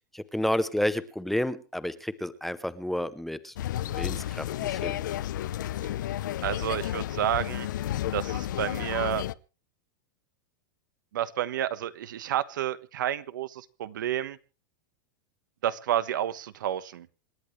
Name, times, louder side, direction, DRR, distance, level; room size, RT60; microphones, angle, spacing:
voice 1, 0.1-3.6 3.9-5.0, left 1 dB, ahead, 14 dB, 0.7 m, -30 dB
sound 1, 3.6-9.3, left 13 dB, 80° left, 0.7 m, -32 dB
voice 2, 6.4-7.7 8.1-9.2 11.1-14.4 15.6-17.1, right 11 dB, 90° right, 14 dB, 1.3 m, -30 dB
27.0 x 10.5 x 3.2 m, 0.33 s
supercardioid pair, 170°, 10 cm